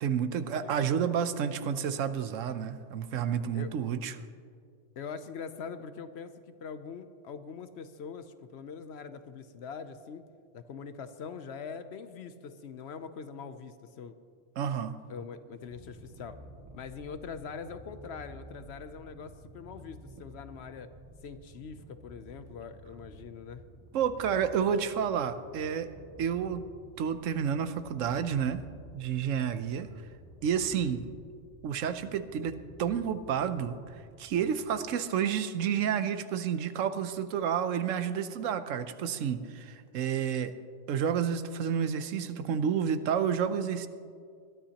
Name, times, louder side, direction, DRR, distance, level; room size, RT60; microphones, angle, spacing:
voice 1, 0.0-4.2 14.6-14.9 23.9-25.9 26.2-26.7 27.0-28.6 28.9-29.9 30.4-31.1 31.6-40.5 40.9-43.9, right 8 dB, 85° right, 11 dB, 1.1 m, -30 dB
voice 2, 5.0-10.2 10.5-14.1 15.1-16.4 16.7-20.9 21.2-23.6, left 6 dB, 65° left, 10 dB, 0.9 m, -43 dB
Purr, 15.6-34.9, right 1 dB, 15° right, 1.9 m, -52 dB
21.0 x 13.0 x 2.9 m, 2.2 s
omnidirectional pair, 1.3 m